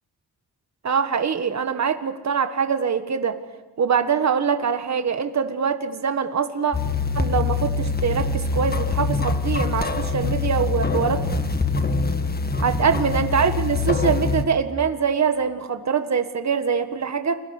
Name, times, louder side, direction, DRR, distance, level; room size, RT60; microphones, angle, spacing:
voice 1, 0.8-3.4 3.8-6.8 7.1-11.3 12.6-17.4, right 6 dB, 45° right, 8 dB, 1.7 m, -23 dB
sound 1, 6.7-14.4, left 3 dB, 25° left, 1.7 m, -24 dB
29.5 x 23.0 x 6.7 m, 1.2 s
wide cardioid pair, 125°, 38 cm